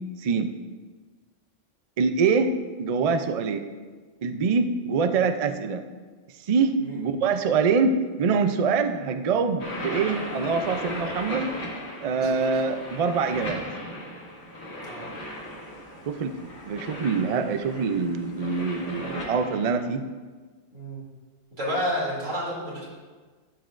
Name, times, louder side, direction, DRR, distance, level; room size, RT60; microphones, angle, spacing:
voice 1, 0.2-0.5 2.0-2.5 2.8-3.6 4.2-5.8 6.5-11.5 12.0-13.6 16.1-16.4 16.6-20.0, right 5 dB, 65° right, 8 dB, 0.3 m, -24 dB
sound 1, 9.6-19.8, left 1 dB, 60° left, 1.8 m, -37 dB
voice 2, 12.0-12.7 14.8-15.1 20.7-21.0 21.6-22.9, equal, 85° right, -5 dB, 3.1 m, -31 dB
12.5 x 8.2 x 2.5 m, 1.4 s
omnidirectional pair, 1.3 m